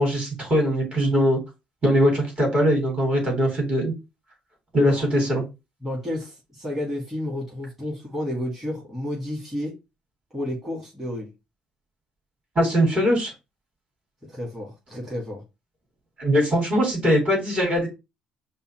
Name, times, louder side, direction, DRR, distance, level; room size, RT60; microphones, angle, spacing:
voice 1, 0.0-1.4 1.8-3.9 4.7-5.4 12.6-13.3 16.2-17.9, equal, 30° right, 2.8 m, -21 dB
voice 2, 5.8-9.7 10.3-11.3 14.2-15.4, left 1 dB, 10° right, 2.5 m, -31 dB
5.4 x 2.0 x 4.6 m
figure-of-eight pair, 50°, 4 cm